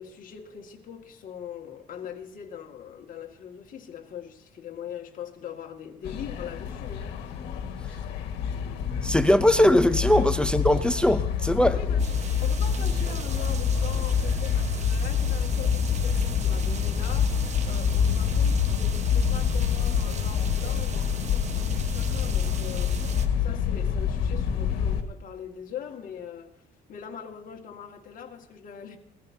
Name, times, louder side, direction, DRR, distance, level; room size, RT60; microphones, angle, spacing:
voice 1, 0.0-7.1 10.2-10.3 11.6-26.5 26.9-29.0, left 8 dB, 55° left, 2.0 m, -41 dB
sound 1, 6.0-25.0, left 7 dB, 85° left, 1.8 m, -26 dB
voice 2, 9.0-11.8, left 1 dB, 5° left, 0.6 m, -20 dB
sound 2, 12.0-23.3, right 6 dB, 40° right, 1.3 m, -40 dB
20.5 x 14.0 x 2.8 m
cardioid pair, 110°, 17 cm